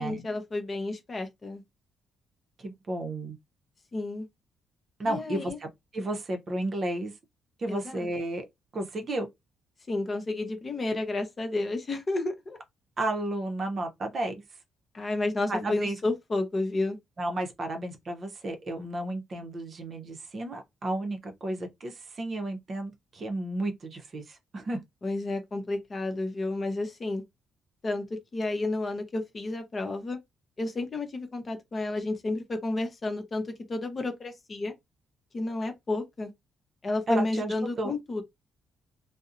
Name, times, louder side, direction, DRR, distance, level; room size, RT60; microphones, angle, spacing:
voice 1, 0.0-1.6 3.9-4.3 5.1-5.6 7.7-8.1 9.9-12.6 14.9-17.0 25.0-27.2 27.8-30.2 30.6-34.7 35.3-36.3 36.8-38.2, left 2 dB, 35° left, 0.7 m, -31 dB
voice 2, 2.6-3.4 5.0-7.1 7.6-8.4 8.7-9.3 13.0-14.3 15.5-16.0 17.2-24.8 37.1-38.0, right 1 dB, 45° right, 0.6 m, -32 dB
2.6 x 2.0 x 2.4 m
cardioid pair, 90°, 0 cm